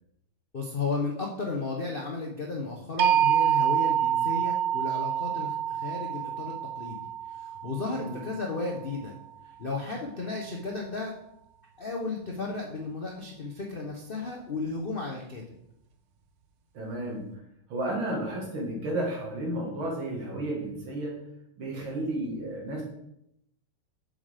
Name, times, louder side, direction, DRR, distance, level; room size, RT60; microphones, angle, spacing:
voice 1, 0.5-7.0 7.6-9.1 9.6-11.1 11.8-15.4, left 3 dB, 85° left, 0 dB, 0.4 m, -34 dB
sound 1, 3.0-9.0, right 10 dB, 90° right, 1.7 m, -27 dB
voice 2, 16.7-17.3 17.7-21.1 21.6-22.8, right 1 dB, 75° right, -3 dB, 2.4 m, -32 dB
7.3 x 6.9 x 3.4 m, 0.78 s
omnidirectional pair, 2.3 m